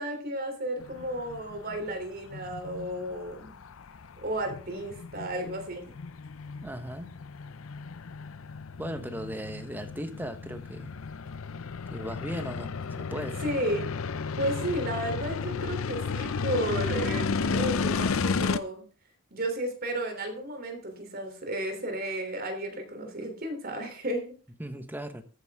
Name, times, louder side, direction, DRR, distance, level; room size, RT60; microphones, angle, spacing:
voice 1, 0.0-3.5 4.2-5.9 13.4-13.9 14.4-18.8 19.3-24.3, right 1 dB, 50° right, 3.4 m, -33 dB
sound 1, 0.8-18.6, left 5 dB, 90° left, 0.6 m, -33 dB
voice 2, 6.6-7.1 8.8-10.9 11.9-12.7 13.0-13.4 24.6-25.2, equal, 10° right, 1.2 m, -37 dB
14.0 x 9.2 x 3.7 m
head